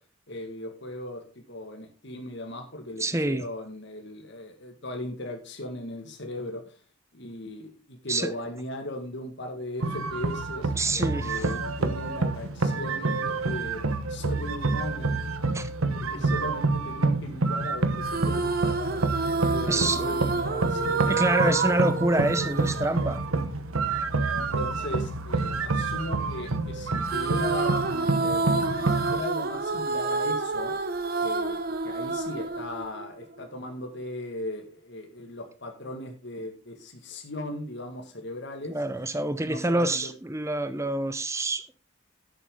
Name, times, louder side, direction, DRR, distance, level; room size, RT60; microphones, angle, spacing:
voice 1, 0.3-6.8 7.1-13.8 14.1-15.4 15.9-21.2 23.9-24.0 24.3-30.9 31.2-38.8 39.4-40.1, left 1 dB, 55° left, 1.9 m, -38 dB
voice 2, 3.0-3.5 8.1-8.3 10.8-11.5 15.5-15.7 16.1-16.2 19.7-20.0 21.1-23.2 38.7-41.7, right 2 dB, 15° right, 0.7 m, -27 dB
sound 1, 9.8-29.2, right 3 dB, 85° right, 1.2 m, -28 dB
sound 2, 18.0-23.5 27.0-33.5, right 3 dB, 45° right, 1.0 m, -29 dB
11.0 x 8.2 x 3.8 m
head